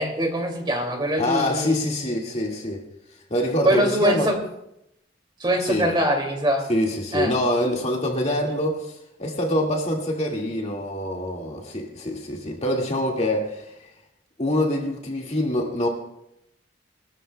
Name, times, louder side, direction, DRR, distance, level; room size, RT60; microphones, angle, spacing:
voice 1, 0.0-1.8 3.6-4.4 5.4-6.6 7.1-7.3 8.3-8.4, right 1 dB, 25° right, 2.4 m, -23 dB
voice 2, 1.2-2.8 3.3-4.3 5.6-5.9 6.7-13.6 14.4-15.9, left 1 dB, 35° left, 1.9 m, -25 dB
22.0 x 13.5 x 2.2 m
head